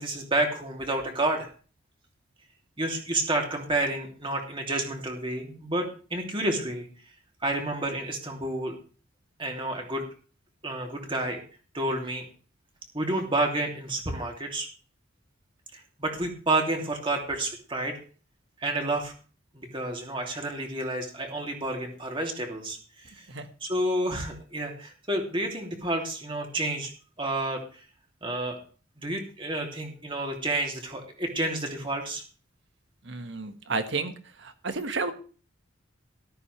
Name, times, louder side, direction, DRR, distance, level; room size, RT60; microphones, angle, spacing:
voice 1, 0.0-1.5 2.8-6.9 7.4-8.7 9.4-10.0 10.6-11.4 11.7-12.3 12.9-14.7 15.7-18.0 18.6-19.1 19.5-23.3 23.6-26.9 27.2-27.6 28.2-28.6 29.0-32.2, right 2 dB, 25° right, 1 dB, 2.9 m, -30 dB
voice 2, 33.0-34.1 34.4-35.1, right 3 dB, 65° right, 8 dB, 1.6 m, -31 dB
13.5 x 13.5 x 3.4 m, 0.39 s
head